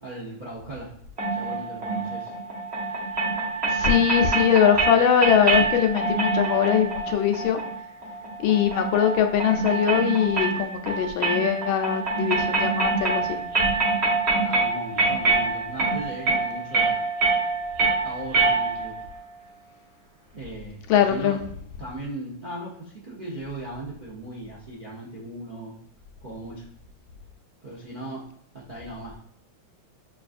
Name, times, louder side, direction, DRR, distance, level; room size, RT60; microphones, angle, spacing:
voice 1, 0.0-0.9 1.3-2.3 14.4-17.1 18.0-18.9 20.3-21.4 21.8-25.7 26.2-26.7 27.6-28.2 28.5-29.2, right 2 dB, 80° right, -5 dB, 0.4 m, -37 dB
sound 1, 1.2-19.0, right 3 dB, 40° right, 1.1 m, -25 dB
voice 2, 3.7-7.6 8.4-13.4 20.9-21.4, left 9 dB, 85° left, 5 dB, 1.4 m, -22 dB
6.3 x 2.4 x 2.5 m, 0.69 s
omnidirectional pair, 2.1 m